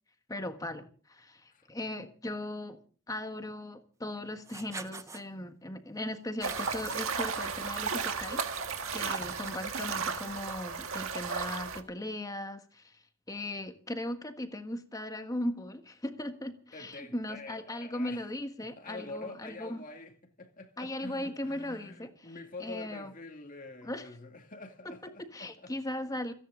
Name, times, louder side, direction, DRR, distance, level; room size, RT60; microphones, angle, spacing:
voice 1, 0.3-2.8 3.1-8.5 8.9-13.0 13.3-19.8 20.8-22.1 22.6-23.1 23.8-24.1 25.3-26.3, left 1 dB, 15° left, 1.5 m, -38 dB
Writing, 4.4-5.2 6.4-10.7, right 4 dB, 15° right, 0.7 m, -48 dB
sound 1, 6.4-11.8, right 5 dB, 80° right, 1.8 m, -34 dB
voice 2, 9.0-9.4 16.7-18.3 18.6-25.7, left 3 dB, 40° left, 2.4 m, -46 dB
29.0 x 10.5 x 3.8 m
head